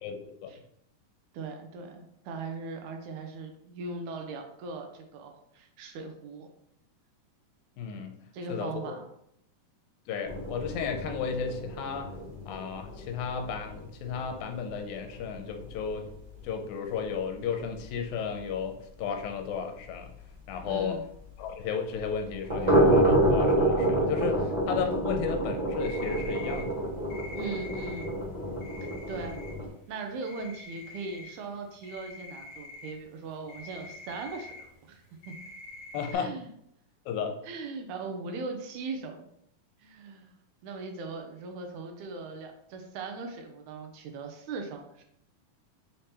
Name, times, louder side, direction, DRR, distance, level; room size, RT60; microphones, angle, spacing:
voice 1, 0.0-0.5 7.8-8.2 8.5-8.9 10.1-12.1 12.5-16.1 16.4-20.1 20.5-21.0 21.4-26.8 35.9-36.3 37.1-37.3, left 6 dB, 80° left, 5 dB, 2.0 m, -34 dB
voice 2, 1.3-6.5 8.3-9.1 20.6-21.0 27.3-28.1 28.8-29.4 29.9-35.3 36.1-36.5 37.4-39.2 39.8-40.3 40.6-45.0, right 3 dB, 85° right, 4 dB, 2.1 m, -39 dB
sound 1, 10.2-16.1 16.4-16.5 16.9-17.0 17.4-17.5 17.8-17.9 20.7-20.8 22.3-29.7, right 1 dB, 35° right, 0.6 m, -28 dB
sound 2, 25.8-26.7 27.1-29.5 29.8-31.3 31.6-36.1, left 3 dB, 60° left, 1.9 m, -45 dB
5.6 x 3.4 x 2.8 m, 0.73 s
omnidirectional pair, 3.5 m